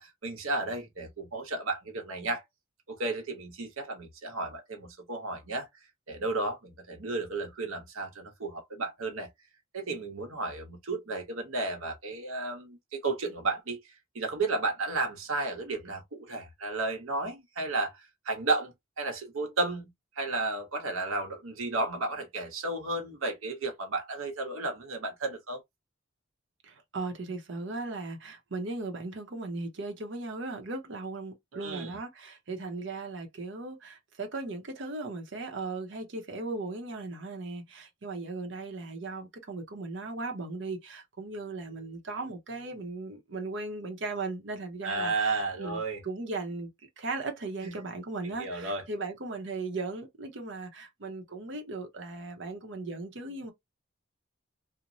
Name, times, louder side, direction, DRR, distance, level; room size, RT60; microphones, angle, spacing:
voice 1, 0.0-2.4 2.9-5.7 6.1-9.3 9.7-13.8 14.1-19.9 20.2-25.6 31.5-32.0 44.8-46.0 47.6-47.7 48.2-48.9, right 3 dB, 85° right, 0.9 m, -33 dB
voice 2, 26.6-46.7 47.0-53.5, right 3 dB, 60° right, 0.7 m, -37 dB
2.9 x 2.1 x 2.6 m
head